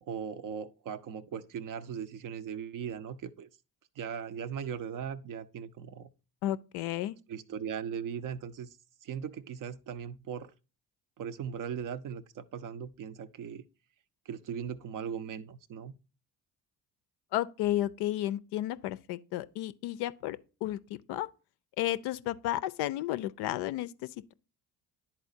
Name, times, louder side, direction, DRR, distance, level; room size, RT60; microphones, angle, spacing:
voice 1, 0.0-3.5 4.0-6.1 7.3-8.7 9.0-10.5 11.2-13.6 14.3-16.0, right 7 dB, 40° right, 0.6 m, -39 dB
voice 2, 6.4-7.1 17.3-21.3 21.8-24.3, left 14 dB, 55° left, 0.5 m, -33 dB
11.0 x 4.2 x 2.6 m
figure-of-eight pair, 50°, 50 cm